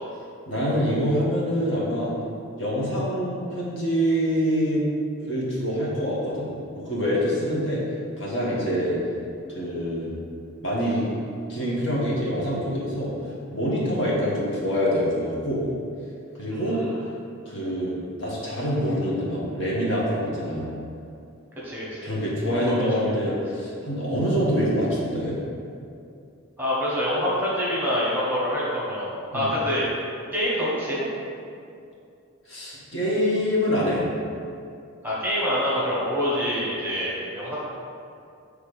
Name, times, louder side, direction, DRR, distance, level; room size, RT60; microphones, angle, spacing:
voice 1, 0.5-2.1 2.6-4.8 5.2-7.8 8.2-9.0 9.5-10.1 10.6-11.1 11.5-13.1 13.5-15.6 16.3-16.8 17.4-20.6 22.0-25.4 29.3-29.5 32.5-34.0, equal, 55° left, -6 dB, 1.5 m, -25 dB
voice 2, 16.5-17.0 21.6-22.1 22.7-23.1 26.6-29.9 30.3-31.1 35.0-37.6, equal, 10° right, -8 dB, 1.3 m, -26 dB
7.3 x 3.4 x 4.9 m, 2.4 s
head